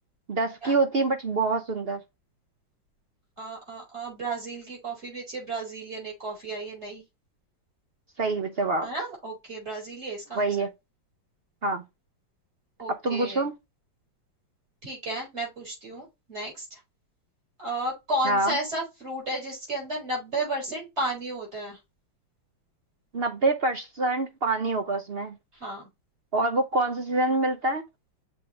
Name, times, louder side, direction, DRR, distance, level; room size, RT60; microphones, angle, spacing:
voice 1, 0.3-2.0 8.2-8.9 10.3-10.7 11.6-11.8 13.0-13.5 18.2-18.5 23.1-25.3 26.3-27.8, right 2 dB, 60° right, 0.6 m, -26 dB
voice 2, 3.4-7.0 8.8-10.7 12.8-13.4 14.8-16.8 17.6-21.8 25.5-25.9, right 1 dB, 35° right, 4.8 m, -33 dB
7.1 x 4.3 x 3.1 m
omnidirectional pair, 2.1 m